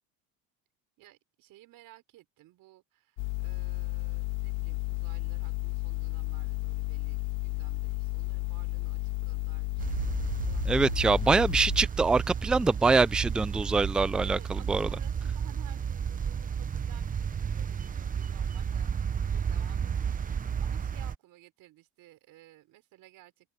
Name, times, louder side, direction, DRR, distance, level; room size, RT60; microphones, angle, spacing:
voice 1, 1.0-11.5 14.2-23.5, right 16 dB, 60° right, 5.7 m, -56 dB
sound 1, 3.2-11.9, left 23 dB, 80° left, 2.2 m, -33 dB
sound 2, 9.8-21.2, right 7 dB, 20° right, 0.9 m, -32 dB
voice 2, 10.7-14.9, right 4 dB, ahead, 0.3 m, -24 dB
supercardioid pair, 110°, 37 cm